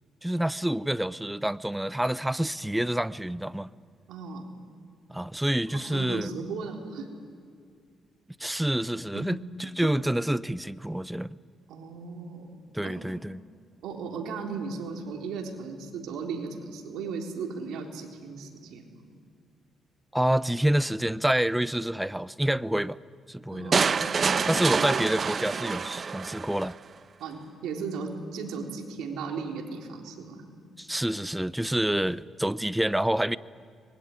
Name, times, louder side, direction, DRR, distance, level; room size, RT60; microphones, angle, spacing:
voice 1, 0.2-3.7 5.1-6.3 8.4-11.3 12.7-13.4 20.1-23.0 23.3-23.7 24.5-26.7 30.8-33.4, right 1 dB, 5° right, 17 dB, 0.6 m, -27 dB
voice 2, 4.1-4.5 5.7-7.1 9.1-9.5 9.8-9.9 11.7-13.0 13.8-18.9 23.5-24.1 27.2-30.5, right 5 dB, 85° right, 2 dB, 3.6 m, -36 dB
sound 1, 23.7-26.7, right 5 dB, 40° right, 0.8 m, -26 dB
24.0 x 21.5 x 9.7 m, 2.2 s
cardioid pair, 90°, 0 cm